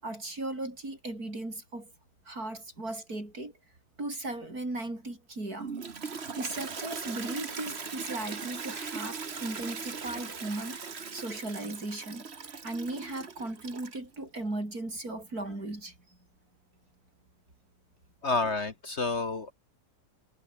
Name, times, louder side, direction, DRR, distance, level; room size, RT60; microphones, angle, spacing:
voice 1, 0.0-1.9 2.3-3.5 4.0-5.7 6.4-10.8 11.1-12.3 12.6-15.9, right 2 dB, 65° right, 7.7 m, -37 dB
Toilet flush, 5.6-14.1, right 5 dB, 40° right, 1.7 m, -39 dB
voice 2, 18.2-19.5, left 3 dB, 45° left, 1.8 m, -29 dB
omnidirectional pair, 1.7 m